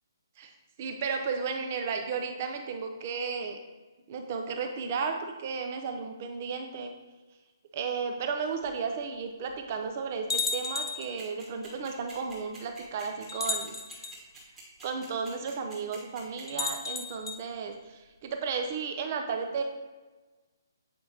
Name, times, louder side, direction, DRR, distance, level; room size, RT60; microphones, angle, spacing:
voice 1, 0.8-3.6 4.1-6.9 7.7-14.1 14.8-19.6, right 5 dB, 30° right, 5 dB, 0.7 m, -34 dB
sound 1, 8.6-8.7 9.5-9.6 10.3-11.1 12.3-12.4 13.3-14.2 16.5-17.4, left 4 dB, 90° left, 0.9 m, -33 dB
sound 2, 11.2-16.4, right 4 dB, 10° right, 1.4 m, -48 dB
8.5 x 4.8 x 2.9 m, 1.3 s
hypercardioid pair, 170°, 2 cm